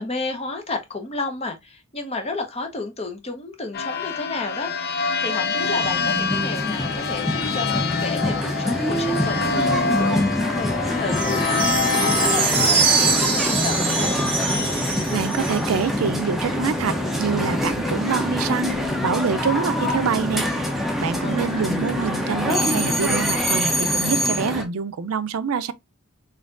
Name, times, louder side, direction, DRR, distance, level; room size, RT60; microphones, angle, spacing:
voice 1, 0.0-10.2 10.6-14.2 21.2-21.7, left 3 dB, 30° left, 1.0 m, -32 dB
sound 1, 3.7-17.0, left 5 dB, 45° left, 0.5 m, -27 dB
sound 2, 5.6-24.6, equal, ahead, 0.7 m, -25 dB
sound 3, 11.1-15.8, right 5 dB, 25° right, 1.4 m, -23 dB
voice 2, 15.1-18.8 19.0-20.5 21.0-25.7, right 6 dB, 80° right, 0.4 m, -26 dB
4.2 x 3.7 x 2.4 m
head